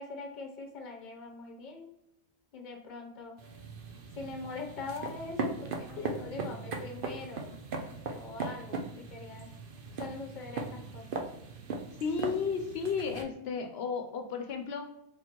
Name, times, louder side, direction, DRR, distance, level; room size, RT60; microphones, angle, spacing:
voice 1, 0.0-1.9 2.5-3.4 4.1-7.6 7.9-9.5 10.0-11.3, left 3 dB, 50° left, 2 dB, 0.9 m, -43 dB
sound 1, 3.4-13.2, right 4 dB, 60° right, 0.8 m, -39 dB
voice 2, 12.0-14.9, left 5 dB, 85° left, 4 dB, 0.8 m, -33 dB
4.4 x 3.9 x 2.8 m, 0.81 s
omnidirectional pair, 1.0 m